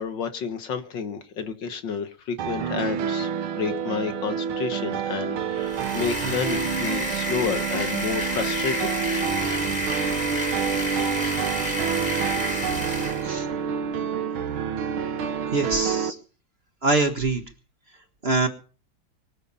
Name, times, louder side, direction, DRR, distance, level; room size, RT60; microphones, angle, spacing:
voice 1, 0.0-9.0, left 6 dB, 65° left, 1.9 m, -30 dB
sound 1, 2.4-16.1, right 7 dB, 85° right, 2.0 m, -28 dB
sound 2, 5.6-13.3, left 1 dB, 20° left, 2.7 m, -30 dB
voice 2, 15.5-16.1 16.8-17.4 18.2-18.5, right 3 dB, 30° right, 1.7 m, -23 dB
23.5 x 8.2 x 5.6 m
omnidirectional pair, 2.2 m